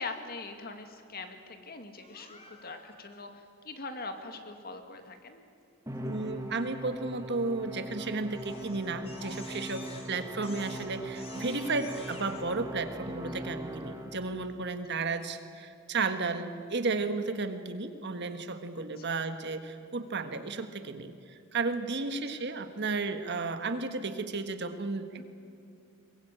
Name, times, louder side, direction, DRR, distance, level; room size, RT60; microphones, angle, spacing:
voice 1, 0.0-5.4 13.2-13.5 19.0-19.3 25.2-25.3, left 3 dB, 45° left, 6 dB, 2.1 m, -42 dB
Crying sobbing, 2.0-2.9 7.6-7.9 8.3-12.4, left 4 dB, 30° left, 2.6 m, -49 dB
Musical instrument, 5.9-14.4, right 1 dB, 15° right, 2.0 m, -40 dB
voice 2, 6.0-25.2, right 3 dB, 50° right, 9 dB, 1.5 m, -33 dB
22.5 x 21.0 x 9.0 m, 2.4 s
head